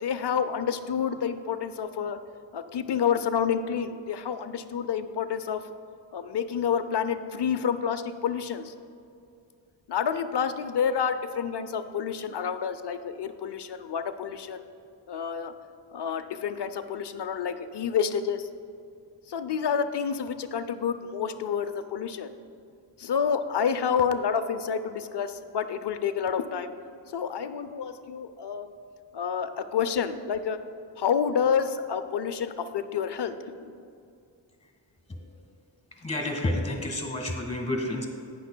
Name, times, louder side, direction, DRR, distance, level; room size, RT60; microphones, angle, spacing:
voice 1, 0.0-2.2 2.5-5.6 6.1-8.7 9.9-14.6 15.1-15.5 15.9-18.5 19.3-22.3 23.0-26.7 27.1-28.7 29.1-30.6 31.0-33.3 33.6-33.7, left 7 dB, 60° left, 10 dB, 0.5 m, -29 dB
voice 2, 36.0-38.1, left 1 dB, 15° left, 3 dB, 1.4 m, -29 dB
12.0 x 9.2 x 2.2 m, 2.4 s
wide cardioid pair, 85°, 47 cm